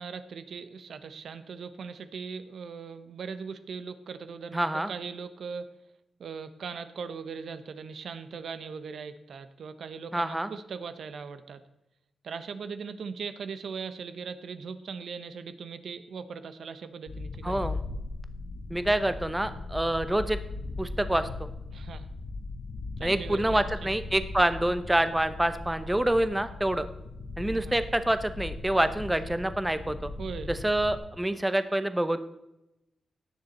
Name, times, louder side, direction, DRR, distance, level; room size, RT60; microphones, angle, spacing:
voice 1, 0.0-5.7 6.2-11.6 12.2-17.6 21.7-22.1 23.0-23.9 27.5-27.8 30.2-30.5, right 5 dB, 70° right, 11 dB, 0.8 m, -39 dB
voice 2, 4.5-4.9 10.1-10.5 17.4-17.8 18.7-20.4 20.8-21.3 23.0-26.9 27.4-30.1 30.5-32.2, right 1 dB, 10° right, 11 dB, 0.7 m, -27 dB
sound 1, 17.1-31.0, left 3 dB, 60° left, 1.4 m, -38 dB
17.5 x 6.8 x 4.2 m, 0.91 s
wide cardioid pair, 110°, 0 cm